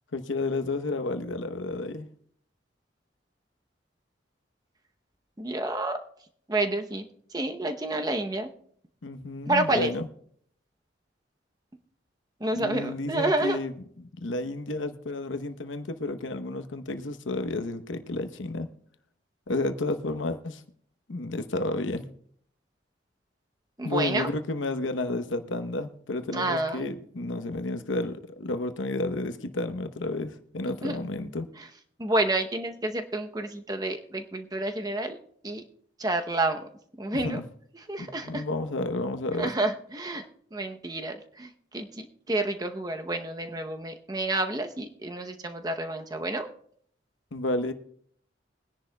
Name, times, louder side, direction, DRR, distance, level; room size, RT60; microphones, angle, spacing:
voice 1, 0.1-2.1 9.0-10.1 12.5-18.7 19.5-20.6 21.1-22.1 23.8-31.5 37.1-37.4 38.0-39.5 47.3-47.7, left 2 dB, 80° left, 8 dB, 0.9 m, -31 dB
voice 2, 5.4-6.0 6.5-7.0 7.3-8.5 9.5-9.9 12.4-13.6 23.8-24.3 26.3-26.9 30.8-31.0 32.0-35.2 35.4-35.6 36.0-36.7 37.0-37.4 37.9-38.4 39.4-40.3 40.5-46.5, right 2 dB, 20° right, 6 dB, 0.8 m, -29 dB
22.5 x 10.5 x 2.2 m, 0.63 s
head